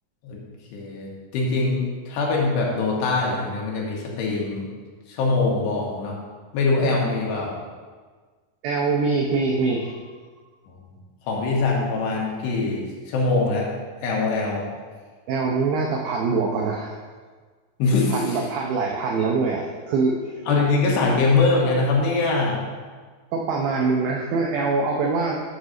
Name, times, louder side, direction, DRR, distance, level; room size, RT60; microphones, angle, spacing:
voice 1, 0.7-4.7 5.1-6.1 6.5-7.5 10.7-10.8 11.3-13.7 14.0-14.6 17.8-18.4 20.5-22.6, left 3 dB, 75° left, -3 dB, 3.4 m, -23 dB
voice 2, 8.6-10.0 15.3-17.0 18.1-20.3 23.3-25.4, right 4 dB, 85° right, 0 dB, 2.0 m, -24 dB
8.5 x 4.0 x 6.4 m, 1.5 s
omnidirectional pair, 5.1 m